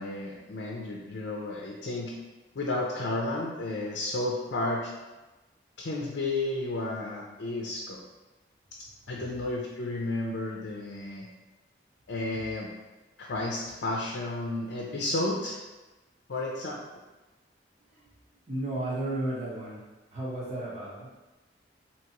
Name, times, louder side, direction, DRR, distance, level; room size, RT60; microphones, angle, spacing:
voice 1, 0.0-2.1 2.5-4.9 5.8-8.0 9.1-11.3 12.1-12.7 13.2-15.6 16.3-16.8, left 2 dB, 80° left, -2 dB, 0.5 m, -32 dB
voice 2, 18.5-19.8 20.1-21.1, right 1 dB, 40° right, -8 dB, 1.0 m, -33 dB
4.5 x 2.9 x 2.9 m, 1.1 s
head